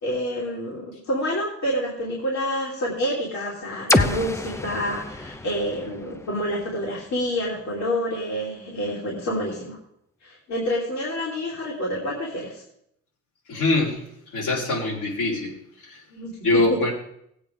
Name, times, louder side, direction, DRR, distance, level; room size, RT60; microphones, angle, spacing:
voice 1, 0.0-9.8 10.2-12.6 16.1-16.3 16.7-16.8, equal, 70° left, -5 dB, 3.1 m, -28 dB
sound 1, 3.9-7.8, left 2 dB, 10° left, 0.6 m, -28 dB
voice 2, 13.5-14.0 14.3-15.5 15.8-16.0 16.4-16.9, left 2 dB, 85° left, -5 dB, 4.4 m, -23 dB
17.0 x 8.7 x 3.7 m, 0.74 s
cardioid pair, 90°, 30 cm